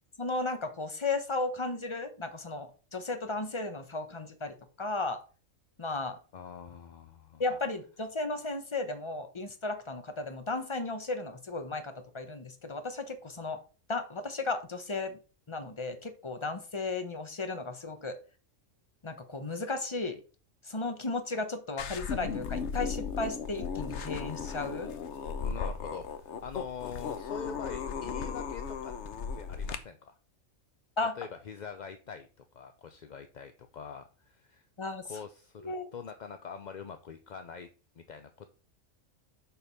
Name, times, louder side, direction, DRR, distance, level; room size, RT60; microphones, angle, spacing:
voice 1, 0.2-5.2 5.8-6.2 7.4-13.6 13.9-15.2 15.5-18.2 19.0-20.2 20.6-24.9 31.0-31.2 34.8-35.0 35.6-35.9, left 3 dB, 25° left, 7 dB, 1.1 m, -35 dB
voice 2, 6.3-7.4 25.4-28.9 29.3-30.2 31.2-34.6 35.0-37.7 38.0-38.5, left 6 dB, 50° left, 8 dB, 0.6 m, -44 dB
sound 1, 21.8-29.8, left 6 dB, 65° left, 1.1 m, -36 dB
6.9 x 5.2 x 5.7 m, 0.36 s
omnidirectional pair, 1.3 m